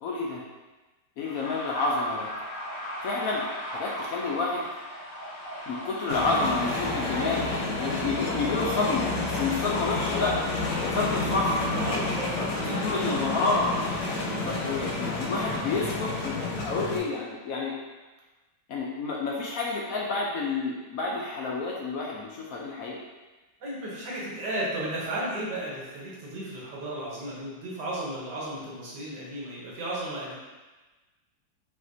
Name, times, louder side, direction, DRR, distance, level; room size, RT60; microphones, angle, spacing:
voice 1, 0.0-0.4 1.2-2.3 3.0-3.4 3.7-4.7 5.7-7.4 7.8-10.4 10.9-11.6 12.4-12.5 12.8-13.8 14.4-17.7 18.7-23.0, left 3 dB, 65° left, -3 dB, 0.9 m, -29 dB
sound 1, 1.2-16.0, equal, 50° left, 1.6 m, -39 dB
sound 2, 6.1-17.0, left 3 dB, 80° left, 1.4 m, -30 dB
voice 2, 11.1-13.3 14.2-14.5 23.6-30.4, right 1 dB, 80° right, -6 dB, 1.8 m, -34 dB
5.6 x 2.8 x 2.7 m, 1.2 s
omnidirectional pair, 1.8 m